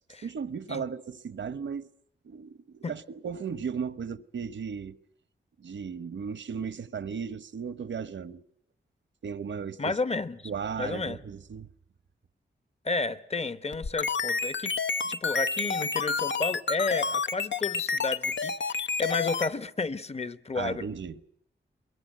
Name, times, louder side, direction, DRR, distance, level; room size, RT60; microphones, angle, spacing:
voice 1, 0.2-1.9 2.2-5.0 5.6-8.4 9.2-10.0 10.4-11.7 20.5-21.2, right 6 dB, 80° right, 1.0 m, -36 dB
voice 2, 9.8-10.5 10.8-11.2 12.8-14.7 15.0-20.9, left 3 dB, 35° left, 1.0 m, -32 dB
sound 1, 13.7-19.5, left 5 dB, 75° left, 1.0 m, -29 dB
23.5 x 22.5 x 9.1 m
wide cardioid pair, 100°, 19 cm